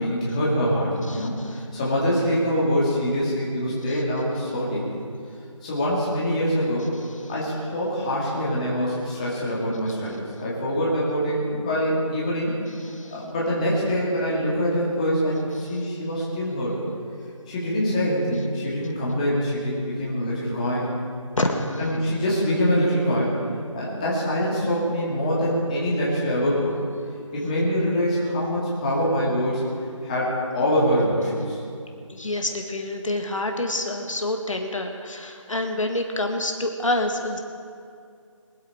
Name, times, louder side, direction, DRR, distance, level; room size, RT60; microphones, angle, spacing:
voice 1, 0.0-5.0 5.6-6.9 7.3-12.5 13.1-16.8 17.5-20.9 21.4-21.5 21.8-23.3 23.7-26.7 27.3-29.6 30.0-31.6, equal, 15° left, -7 dB, 2.3 m, -24 dB
voice 2, 1.1-1.6 3.9-4.0 12.8-13.2 21.4-21.6 32.1-37.4, left 1 dB, 70° left, 4 dB, 1.8 m, -27 dB
23.5 x 8.5 x 4.7 m, 2.3 s
figure-of-eight pair, 170°, 17 cm